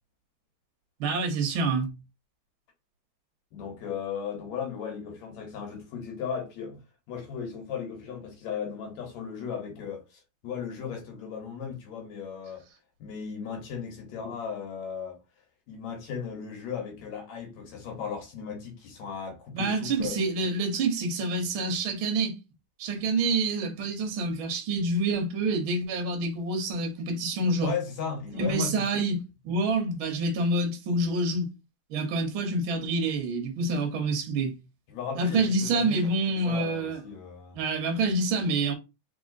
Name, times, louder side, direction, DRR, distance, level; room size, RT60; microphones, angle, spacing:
voice 1, 1.0-1.9 19.5-22.4 22.8-27.7 28.3-31.5 31.9-34.5 35.2-37.0 37.5-38.7, right 2 dB, 65° right, 1.4 m, -27 dB
voice 2, 3.5-6.8 7.1-12.6 13.0-15.2 15.7-20.2 27.6-28.9 34.9-37.6, left 6 dB, 70° left, 2.4 m, -36 dB
4.1 x 3.9 x 2.7 m
omnidirectional pair, 3.4 m